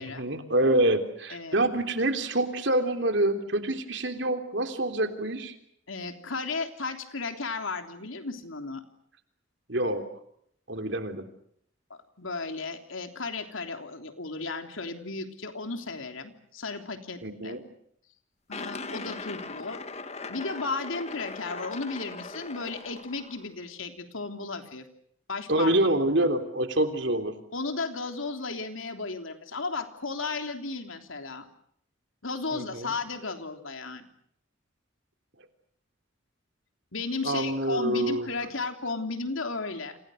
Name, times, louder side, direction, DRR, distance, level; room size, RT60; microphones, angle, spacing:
voice 1, 0.0-5.6 9.7-10.0 10.7-11.3 17.2-17.6 25.5-27.3 32.5-32.9 37.2-38.3, right 1 dB, 60° right, 7 dB, 3.4 m, -26 dB
voice 2, 5.9-8.8 12.2-17.6 18.5-19.8 20.3-24.9 25.3-25.7 27.5-31.5 32.2-34.1 36.9-40.0, left 3 dB, 80° left, 6 dB, 3.3 m, -34 dB
sound 1, 18.5-23.5, left 3 dB, 30° left, 1.6 m, -39 dB
30.0 x 27.5 x 6.5 m, 0.70 s
head